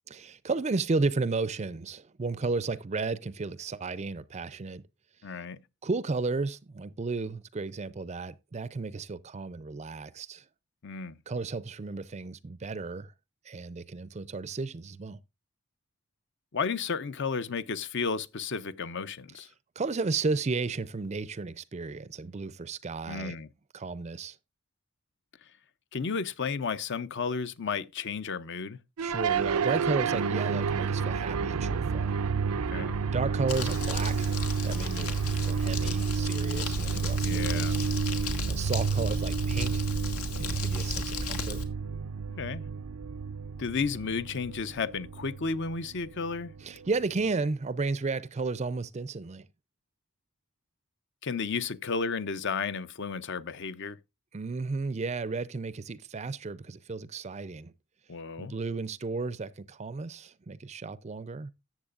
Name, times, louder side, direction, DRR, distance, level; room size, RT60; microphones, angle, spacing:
voice 1, 0.1-4.8 5.8-10.4 11.3-13.1 13.5-15.2 19.8-23.4 23.7-24.4 29.0-32.1 33.1-34.3 34.6-35.1 35.4-37.8 38.5-39.8 40.4-41.6 46.6-49.5 54.3-57.7 58.4-61.5, right 3 dB, 30° right, 0.4 m, -33 dB
voice 2, 5.2-5.6 10.8-11.2 16.5-19.5 23.1-23.5 25.9-28.8 32.7-33.0 37.2-37.8 42.4-42.6 43.6-46.5 51.2-54.0 58.1-58.5, left 5 dB, 55° left, 0.6 m, -33 dB
sound 1, 29.0-47.3, right 5 dB, 90° right, 0.5 m, -30 dB
Crumpling crinkling, 33.5-41.6, left 3 dB, 85° left, 1.7 m, -36 dB
13.5 x 7.9 x 2.4 m
head